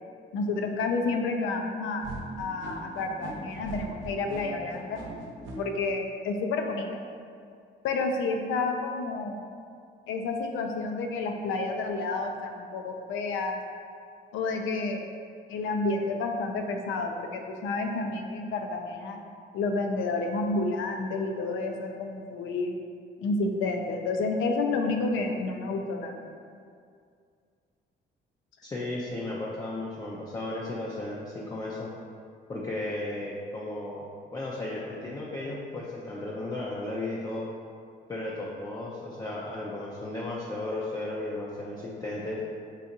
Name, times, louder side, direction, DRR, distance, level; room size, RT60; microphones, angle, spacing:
voice 1, 0.3-2.1 2.4-5.0 5.6-7.0 7.8-9.4 10.1-13.6 14.3-15.0 15.5-19.2 19.5-22.7 23.2-26.2, left 3 dB, 80° left, 3 dB, 0.4 m, -30 dB
sound 1, 2.0-5.6, right 2 dB, 75° right, 0.7 m, -40 dB
voice 2, 28.6-31.9 32.5-37.5 38.1-42.4, left 2 dB, 20° left, -5 dB, 0.4 m, -35 dB
3.9 x 2.4 x 2.6 m, 2.3 s
cardioid pair, 90°, 20 cm